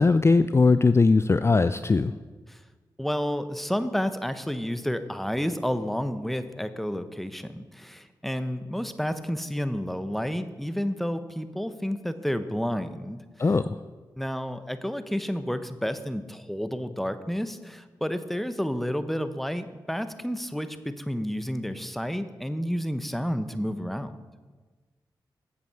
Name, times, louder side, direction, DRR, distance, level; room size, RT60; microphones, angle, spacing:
voice 1, 0.0-2.1 13.4-13.8, left 3 dB, 30° left, 12 dB, 0.4 m, -20 dB
voice 2, 3.0-13.2 14.2-24.1, equal, ahead, 11 dB, 0.8 m, -30 dB
8.2 x 7.4 x 6.8 m, 1.3 s
cardioid pair, 45°, 9 cm